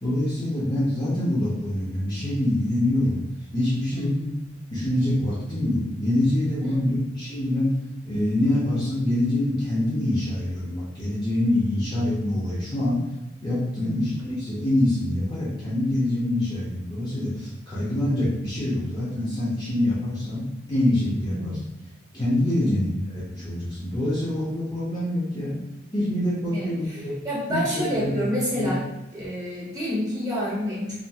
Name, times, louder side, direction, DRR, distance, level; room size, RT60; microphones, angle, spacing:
voice 1, 0.0-3.2 3.5-4.2 4.7-7.8 8.1-13.0 13.4-21.6 22.1-25.6 25.9-27.1 27.5-28.3 28.5-28.7, left 1 dB, 20° left, -9 dB, 0.6 m, -25 dB
voice 2, 3.9-4.7 6.6-7.0 13.8-14.2 21.3-21.7 22.6-22.9 26.5-28.8 29.1-30.9, equal, 20° right, -8 dB, 1.0 m, -29 dB
2.7 x 2.4 x 2.3 m, 0.96 s
head